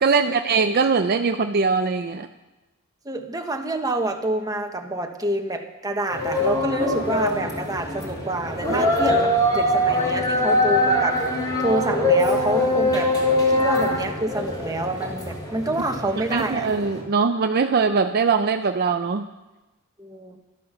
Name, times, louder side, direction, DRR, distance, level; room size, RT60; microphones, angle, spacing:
voice 1, 0.0-2.3 16.1-19.3, right 5 dB, 45° right, 7 dB, 0.5 m, -21 dB
voice 2, 3.0-11.2 11.6-13.1 13.5-16.7 20.0-20.4, right 2 dB, 15° right, 4 dB, 1.3 m, -27 dB
sound 1, 6.1-17.0, left 1 dB, 20° left, 3.8 m, -23 dB
13.0 x 12.5 x 6.8 m, 1.1 s
head